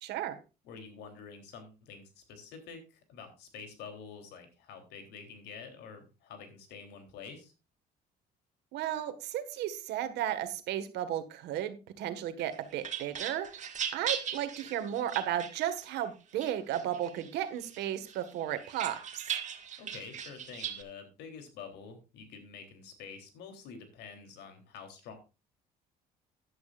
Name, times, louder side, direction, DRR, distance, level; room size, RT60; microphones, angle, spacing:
voice 1, 0.0-0.4 8.7-19.3, right 11 dB, 85° right, 10 dB, 1.7 m, -34 dB
voice 2, 0.6-7.5 19.8-25.1, left 5 dB, 80° left, 6 dB, 3.5 m, -48 dB
sound 1, 12.4-16.0 16.4-17.3 17.7-20.8, right 9 dB, 45° right, 1.8 m, -39 dB
14.5 x 11.0 x 2.5 m, 0.30 s
cardioid pair, 110°, 17 cm